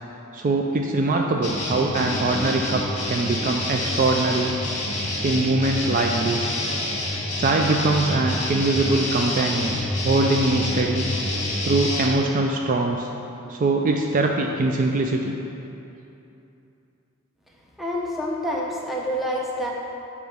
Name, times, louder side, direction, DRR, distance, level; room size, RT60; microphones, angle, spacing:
voice 1, 0.3-4.6 5.2-6.5 7.4-11.1 11.6-13.1 13.5-15.3, right 2 dB, 40° right, 2 dB, 0.3 m, -22 dB
sound 1, 1.4-12.1, left 1 dB, 35° left, 1.2 m, -27 dB
voice 2, 17.8-19.7, equal, ahead, -3 dB, 0.7 m, -27 dB
8.8 x 3.1 x 5.8 m, 2.9 s
head